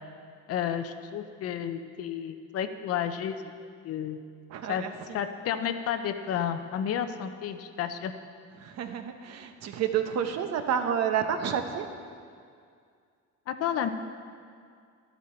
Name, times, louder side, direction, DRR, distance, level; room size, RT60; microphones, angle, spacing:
voice 1, 0.5-3.4 3.8-4.2 4.7-4.8 5.1-8.1 13.5-13.9, left 9 dB, 50° left, 9 dB, 0.7 m, -31 dB
voice 2, 4.5-5.2 8.6-11.9, right 8 dB, 60° right, 7 dB, 0.9 m, -30 dB
13.0 x 11.0 x 4.4 m, 2.2 s
cardioid pair, 155°, 30 cm